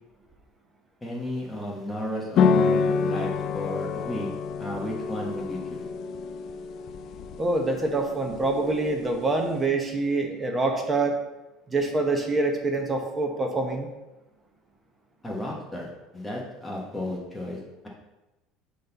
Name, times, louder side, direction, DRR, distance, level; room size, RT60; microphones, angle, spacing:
voice 1, 1.0-4.3 4.6-5.8 15.2-15.9 16.1-17.6, left 1 dB, 10° left, -3 dB, 1.4 m, -33 dB
sound 1, 2.4-9.7, left 5 dB, 50° left, 0.5 m, -28 dB
voice 2, 7.4-11.2 11.7-13.9, right 2 dB, 20° right, 3 dB, 0.9 m, -25 dB
8.4 x 4.0 x 4.1 m, 1.0 s
cardioid pair, 130°, 0 cm